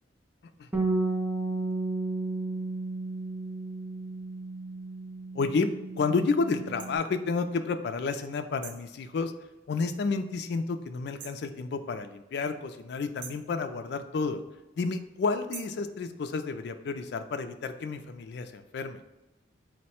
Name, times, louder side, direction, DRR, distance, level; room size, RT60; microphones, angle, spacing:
Bass guitar, 0.7-7.0, right 2 dB, 10° right, 0.4 m, -33 dB
voice 1, 5.3-5.7 6.0-9.3 9.7-14.4 14.8-19.0, left 4 dB, 60° left, 9 dB, 0.3 m, -30 dB
sound 1, 6.8-6.9 8.6-8.9 11.2-11.5 13.2-13.5 15.5-15.8, right 7 dB, 65° right, 0.4 m, -44 dB
4.6 x 2.1 x 4.2 m, 1.0 s
head